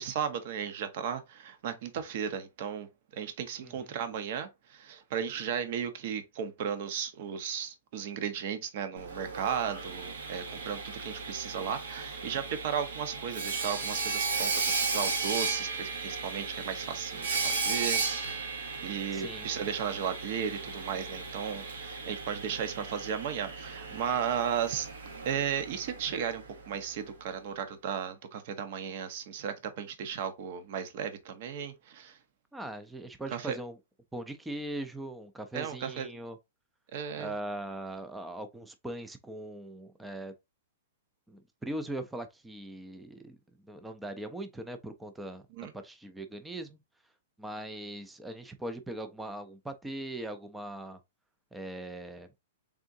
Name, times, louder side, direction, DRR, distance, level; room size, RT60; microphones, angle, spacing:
voice 1, 0.0-2.9 3.1-18.3 18.8-24.9 25.2-32.2 33.3-33.6 35.5-36.1 36.9-37.3 45.5-45.7, right 8 dB, 50° right, 0.6 m, -35 dB
Sawing, 9.0-26.8, right 4 dB, 85° right, 1.2 m, -35 dB
voice 2, 19.1-19.5 23.9-24.0 32.5-33.8 34.1-36.4 37.1-40.3 41.3-43.4 43.7-45.4 45.7-46.8 47.4-51.0 51.5-52.3, right 1 dB, 5° right, 0.4 m, -40 dB
3.6 x 3.6 x 2.6 m
hypercardioid pair, 160°, 0 cm